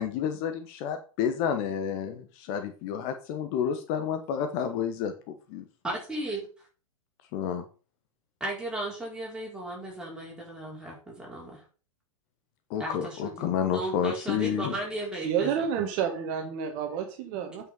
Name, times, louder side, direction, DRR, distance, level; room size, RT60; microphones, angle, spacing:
voice 1, 0.0-5.6 7.3-7.6 12.7-14.7, left 8 dB, 35° left, 8 dB, 1.1 m, -30 dB
voice 2, 5.8-6.5 8.4-11.6 12.8-15.7 17.3-17.5, right 1 dB, 5° right, -3 dB, 4.8 m, -35 dB
voice 3, 15.2-17.7, right 8 dB, 40° right, 5 dB, 1.6 m, -29 dB
9.0 x 5.8 x 5.6 m, 0.37 s
figure-of-eight pair, 105°, 18 cm